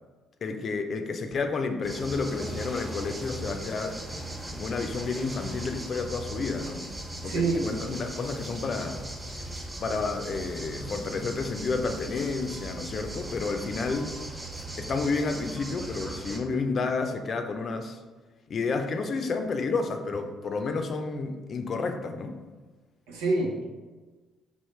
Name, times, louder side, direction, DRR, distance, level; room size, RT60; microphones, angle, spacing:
voice 1, 0.4-4.0 4.6-6.9 7.2-9.0 9.8-14.2 14.8-18.0 18.5-22.4, left 4 dB, 50° left, 6 dB, 0.5 m, -30 dB
sound 1, 1.8-16.4, right 1 dB, 20° right, 1.3 m, -38 dB
voice 2, 7.2-7.6 23.1-23.6, right 3 dB, 85° right, -1 dB, 0.9 m, -26 dB
5.3 x 3.1 x 3.2 m, 1.3 s
hypercardioid pair, 55°, 0 cm